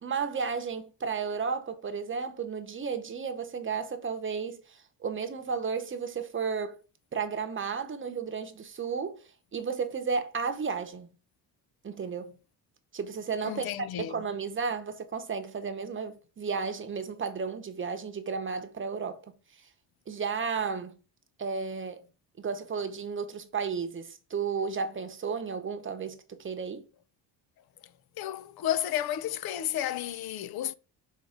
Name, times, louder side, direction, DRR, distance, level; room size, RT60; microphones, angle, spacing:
voice 1, 0.0-6.8 7.1-11.2 11.8-12.4 12.9-13.7 14.0-19.2 20.1-21.0 21.4-22.0 22.4-26.9, right 5 dB, 30° right, 0.9 m, -33 dB
voice 2, 13.4-14.2 27.8-30.7, left 11 dB, 60° left, 0.6 m, -32 dB
5.6 x 3.6 x 5.0 m
cardioid pair, 125°, 42 cm